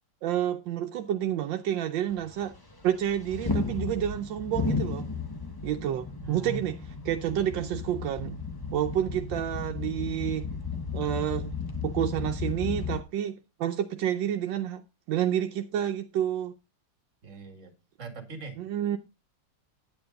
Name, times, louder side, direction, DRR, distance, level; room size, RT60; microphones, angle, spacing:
voice 1, 0.2-2.5 2.8-5.1 5.6-6.8 7.1-8.4 8.7-10.5 10.9-11.5 11.8-14.8 15.1-16.5 18.6-19.0, right 10 dB, 80° right, 1.4 m, -29 dB
sound 1, 2.1-13.0, left 4 dB, 20° left, 0.7 m, -34 dB
voice 2, 6.2-6.6 17.2-18.6, right 4 dB, 40° right, 2.3 m, -41 dB
9.4 x 9.1 x 3.9 m
omnidirectional pair, 2.0 m